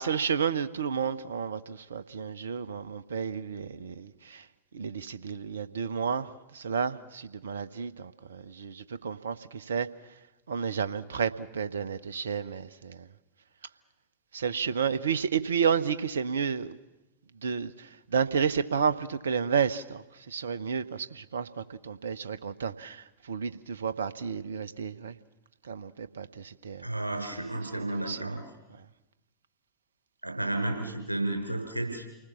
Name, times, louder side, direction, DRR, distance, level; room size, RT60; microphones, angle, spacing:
voice 1, 0.0-4.4 4.7-9.9 10.5-13.1 14.3-16.8 17.4-25.2 25.6-26.9 27.8-28.3, right 6 dB, 70° right, 1.1 m, -31 dB
voice 2, 26.8-28.4 30.2-32.0, right 2 dB, 85° right, 6.2 m, -32 dB
29.5 x 20.0 x 7.2 m
figure-of-eight pair, 90°, 0 cm